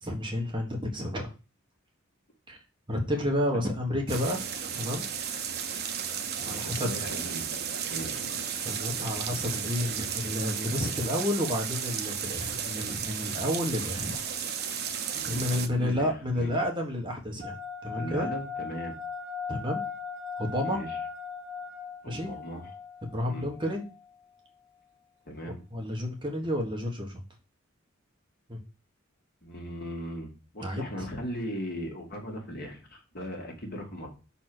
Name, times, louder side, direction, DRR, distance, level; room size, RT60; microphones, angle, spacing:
voice 1, 0.0-1.3 2.5-2.6 2.9-4.4 4.7-5.1 6.4-6.9 8.6-14.2 15.2-17.5 17.8-18.3 19.5-19.8 20.4-20.8 22.1-22.3 23.0-23.9 25.7-27.2 28.5-28.6 30.6-31.1, left 1 dB, 25° right, 1 dB, 1.5 m, -30 dB
sound 1, 4.1-15.7, right 7 dB, 50° right, 0.9 m, -34 dB
voice 2, 6.4-7.6 7.9-8.2 15.1-16.5 17.9-19.0 20.6-21.0 22.0-22.7 23.2-23.5 25.3-25.6 29.4-30.3 30.5-34.1, equal, 45° left, 1 dB, 2.1 m, -38 dB
sound 2, 17.4-24.0, left 6 dB, 70° right, 1.9 m, -38 dB
6.2 x 4.3 x 6.2 m, 0.32 s
head